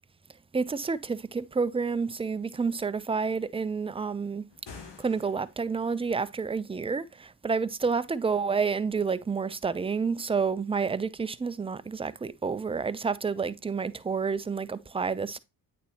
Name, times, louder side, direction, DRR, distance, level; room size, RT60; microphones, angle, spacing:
voice 1, 0.5-4.4 5.0-15.4, right 5 dB, 10° right, 0.4 m, -29 dB
sound 1, 4.5-5.8, left 4 dB, 55° left, 1.9 m, -48 dB
8.4 x 4.2 x 2.9 m
hypercardioid pair, 45°, 50 cm